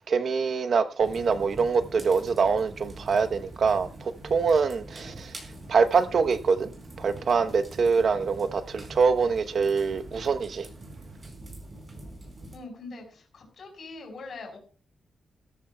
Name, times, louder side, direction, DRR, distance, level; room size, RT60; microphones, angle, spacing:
voice 1, 0.1-5.3 5.7-6.7 7.0-10.7, right 5 dB, 50° right, 0.9 m, -24 dB
sound 1, 1.0-12.6, right 1 dB, 30° right, 4.4 m, -44 dB
voice 2, 12.5-14.6, left 3 dB, 50° left, 5.3 m, -42 dB
18.5 x 13.5 x 2.3 m
wide cardioid pair, 180°, 0 cm